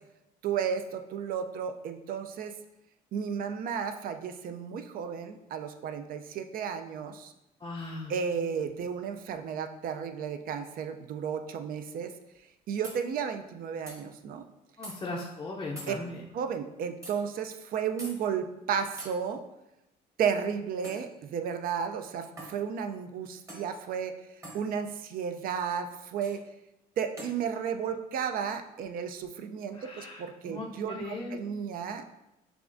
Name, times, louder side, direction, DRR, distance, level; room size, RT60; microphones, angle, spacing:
voice 1, 0.4-2.5 3.1-7.3 8.1-12.1 12.7-14.4 15.9-16.0 16.3-19.4 20.2-24.1 24.5-26.4 27.0-32.0, right 7 dB, 60° right, 8 dB, 0.4 m, -33 dB
voice 2, 7.6-8.1 14.8-16.2 29.7-31.4, left 2 dB, 25° left, -4 dB, 0.5 m, -38 dB
sound 1, 12.4-12.5 12.8-13.0 13.9-14.0 14.8-15.0 15.8-15.9 17.0-17.2 18.0-18.2 19.0-19.1 20.8-21.1 22.4-22.6 23.5-23.7 24.4-24.6 26.2-26.4 27.2-27.4, right 1 dB, 15° right, 1.0 m, -43 dB
6.7 x 2.4 x 2.5 m, 0.92 s
cardioid pair, 110°, 17 cm